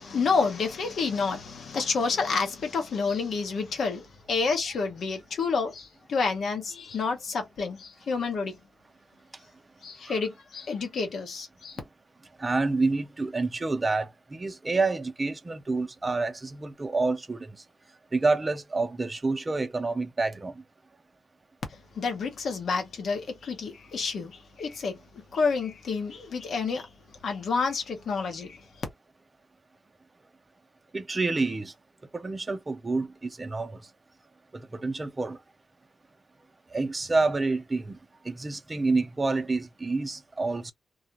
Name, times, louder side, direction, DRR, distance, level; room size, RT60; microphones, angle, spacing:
voice 1, 0.0-8.6 9.8-11.8 22.0-26.9 27.2-28.8, left 4 dB, 70° left, 0.9 m, -29 dB
voice 2, 12.4-17.4 18.1-20.5 30.9-31.7 32.2-33.1 33.4-33.7 34.8-35.4 36.7-38.0 38.3-40.7, right 3 dB, 30° right, 0.5 m, -28 dB
2.3 x 2.1 x 2.7 m
cardioid pair, 60°, 0 cm